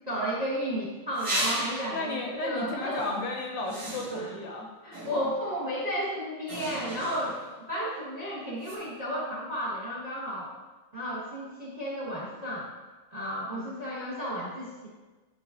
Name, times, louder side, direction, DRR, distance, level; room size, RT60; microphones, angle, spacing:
voice 1, 0.1-3.1 4.1-4.4 4.8-7.4 7.7-10.5 10.9-12.7 13.1-14.9, equal, 25° right, -5 dB, 1.0 m, -33 dB
sound 1, 1.1-2.0 2.9-3.1 3.7-4.4 4.9-5.5 6.5-7.5 8.6-8.8, right 1 dB, 55° right, 2.7 m, -35 dB
voice 2, 1.9-4.7 13.5-13.7, left 2 dB, 65° left, 0 dB, 1.5 m, -34 dB
10.5 x 4.1 x 2.5 m, 1.2 s
omnidirectional pair, 2.3 m